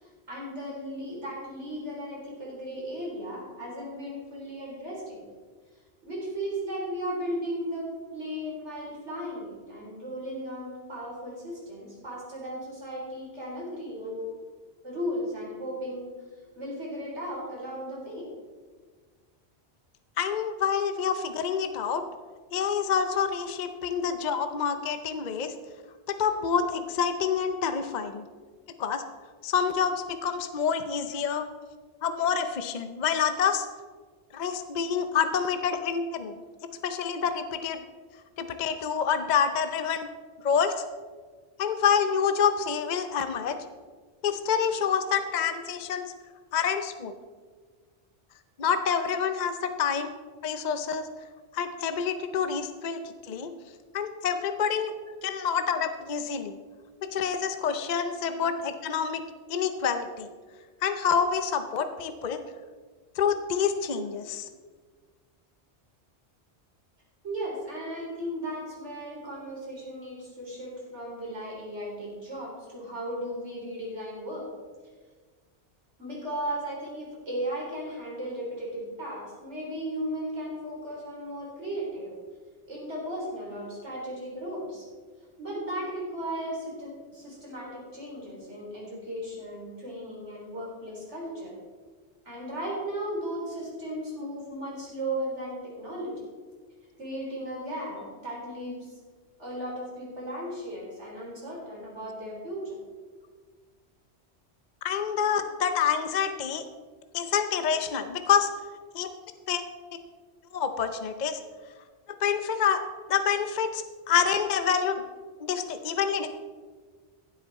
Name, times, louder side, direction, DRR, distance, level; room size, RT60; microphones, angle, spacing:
voice 1, 0.0-5.2 6.0-14.3 14.8-16.1 16.6-18.3 67.2-74.5 76.0-82.1 82.7-84.8 85.4-91.5 92.3-96.2 97.0-98.9 99.4-102.8, equal, 85° right, -4 dB, 4.2 m, -36 dB
voice 2, 20.2-22.0 22.5-25.5 26.1-28.2 28.8-29.0 29.4-31.5 32.0-33.7 34.3-36.4 36.8-37.8 38.4-40.1 40.4-40.8 41.6-43.6 44.2-46.1 46.5-47.1 48.6-50.1 50.4-51.1 51.5-53.0 53.3-53.5 53.9-54.9 55.2-56.6 57.0-59.2 59.5-60.3 60.8-62.4 63.2-64.5 104.8-106.6 107.1-108.5 108.9-109.1 109.5-109.6 110.5-111.4 112.2-112.8 113.1-115.0 115.4-116.3, left 7 dB, 45° left, 9 dB, 0.7 m, -27 dB
15.5 x 8.1 x 4.1 m, 1.5 s
omnidirectional pair, 1.2 m